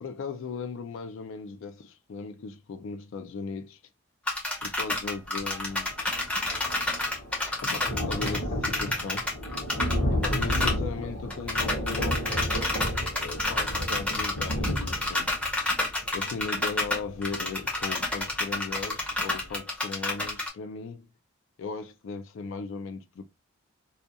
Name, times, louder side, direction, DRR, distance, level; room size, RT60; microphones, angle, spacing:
voice 1, 0.0-3.8 4.6-5.9 7.6-9.2 10.1-12.3 13.2-15.3 16.1-21.1 21.6-23.2, left 4 dB, 60° left, 0.3 m, -37 dB
sound 1, 4.3-10.0 10.2-10.8 11.0-11.1 11.3-20.5, left 2 dB, 5° left, 0.5 m, -29 dB
Thunder, 5.7-18.3 18.8-18.9 19.2-19.3, equal, 35° left, 0.8 m, -32 dB
2.4 x 2.2 x 2.7 m
head